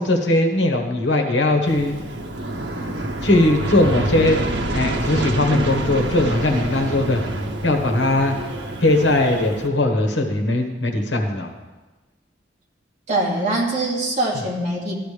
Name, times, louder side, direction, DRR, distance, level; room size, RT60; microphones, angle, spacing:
voice 1, 0.0-2.0 3.2-4.4 4.7-7.2 7.6-8.3 8.8-11.5, left 2 dB, 75° left, 3 dB, 1.4 m, -19 dB
Aircraft, 1.7-9.7, right 1 dB, 85° right, 1.0 m, -27 dB
sound 1, 4.1-6.8, equal, 25° right, 1.2 m, -39 dB
voice 2, 13.1-14.9, right 2 dB, 40° right, -3 dB, 2.4 m, -23 dB
13.5 x 10.5 x 3.4 m, 1.2 s
head